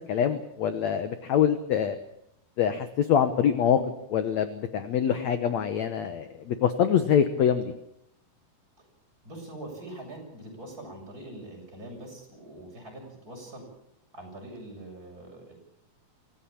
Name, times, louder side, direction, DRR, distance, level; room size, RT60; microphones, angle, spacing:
voice 1, 0.1-2.0 2.6-3.8 4.1-7.7, left 8 dB, 70° left, 10 dB, 1.7 m, -24 dB
voice 2, 9.2-13.6 14.1-15.5, right 1 dB, 20° right, 0 dB, 7.3 m, -43 dB
25.0 x 16.5 x 8.6 m, 0.78 s
omnidirectional pair, 4.7 m